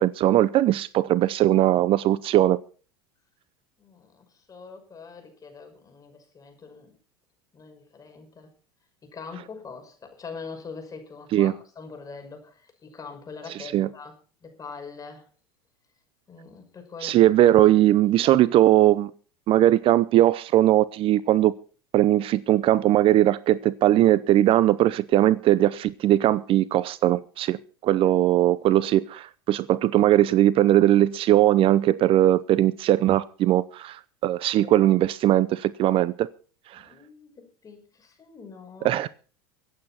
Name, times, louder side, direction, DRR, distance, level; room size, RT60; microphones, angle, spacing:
voice 1, 0.0-2.6 11.3-11.5 13.7-13.9 17.0-19.1 19.5-21.5 21.9-36.3 36.7-36.8 38.8-39.1, right 13 dB, 45° right, 0.7 m, -20 dB
voice 2, 3.8-7.0 7.5-8.5 9.0-14.1 14.4-15.3 16.3-17.8 18.2-18.4 28.0-28.1 34.5-34.8 36.7-39.0, left 5 dB, 25° left, 5.8 m, -43 dB
24.5 x 8.8 x 4.3 m
hypercardioid pair, 95°, 13 cm